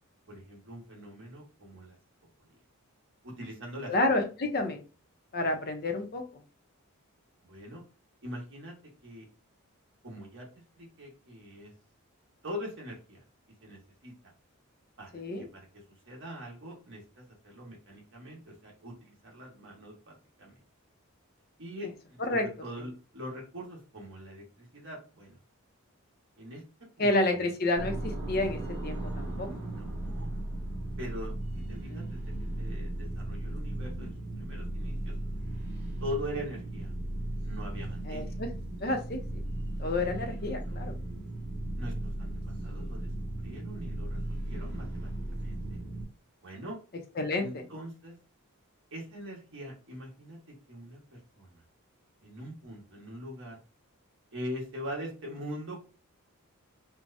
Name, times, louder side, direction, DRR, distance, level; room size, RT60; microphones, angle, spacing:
voice 1, 0.3-2.0 3.2-3.9 7.4-7.8 8.2-8.7 9.0-9.3 10.0-10.5 10.8-11.7 12.4-13.2 13.6-14.1 15.0-20.1 20.4-20.6 21.6-25.4 26.4-26.6 27.0-27.2 29.5-30.3 31.0-32.2 32.6-35.1 36.0-36.9 37.4-38.3 40.5-40.8 41.8-42.3 42.6-43.1 43.4-45.6 46.4-46.8 47.4-48.2 48.9-50.4 50.7-51.0 51.4-51.6 52.2-53.6 54.3-55.9, equal, 55° right, -2 dB, 1.4 m, -42 dB
voice 2, 3.9-4.8 5.3-6.2 15.1-15.5 22.3-22.5 27.0-29.5 31.9-32.0 38.1-38.5 38.8-39.4 39.8-40.9 47.2-47.6, left 2 dB, 45° left, 5 dB, 0.6 m, -30 dB
sound 1, 27.8-46.0, right 1 dB, 35° right, 1.7 m, -36 dB
4.7 x 2.2 x 2.6 m, 0.34 s
head